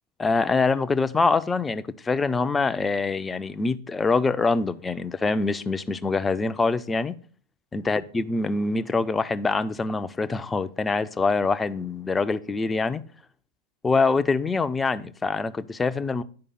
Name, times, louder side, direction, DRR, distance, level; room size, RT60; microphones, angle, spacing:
voice 1, 0.2-7.1 7.7-13.0 13.8-16.2, left 3 dB, 15° left, 0.5 m, -24 dB
9.7 x 5.2 x 5.7 m
figure-of-eight pair, 90°, 0 cm